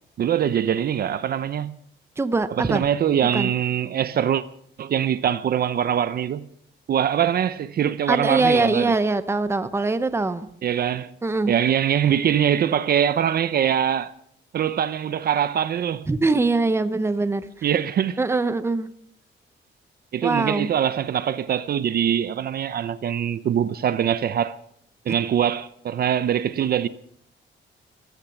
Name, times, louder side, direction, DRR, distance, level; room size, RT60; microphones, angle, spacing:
voice 1, 0.2-1.7 2.6-4.4 4.8-6.5 6.9-8.9 10.6-11.1 11.5-14.1 14.5-16.1 17.6-18.2 20.1-24.6 25.1-26.9, right 9 dB, 50° right, 0.6 m, -23 dB
voice 2, 2.2-2.9 3.3-3.5 8.1-10.5 11.2-11.5 16.1-17.5 18.2-18.9 20.2-20.7 25.1-25.2, right 3 dB, 15° right, 0.8 m, -22 dB
15.0 x 13.5 x 7.1 m
wide cardioid pair, 165°, 20 cm